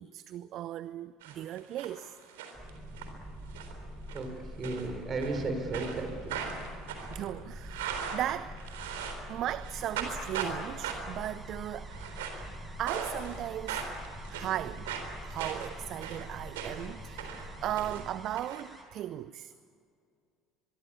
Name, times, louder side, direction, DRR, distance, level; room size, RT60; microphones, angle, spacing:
voice 1, 0.0-2.2 7.1-8.6 9.3-11.9 12.8-13.9 14.3-14.9 15.2-19.5, right 12 dB, 55° right, 0.6 m, -37 dB
sound 1, 1.2-1.9 2.2-3.1 3.5-3.8 4.1-4.3 4.6-5.4 5.7-9.3 9.6-10.6 10.8-11.2 11.8-12.5 12.9-13.4 13.7-16.9 17.2-18.6, right 7 dB, 75° right, 3.8 m, -38 dB
sound 2, 2.5-18.1, equal, 5° right, 5.2 m, -45 dB
voice 2, 4.6-6.4, right 3 dB, 35° right, 6.1 m, -34 dB
sound 3, 9.6-18.8, right 1 dB, 20° right, 6.9 m, -54 dB
23.5 x 23.0 x 8.6 m
hypercardioid pair, 65°, 0 cm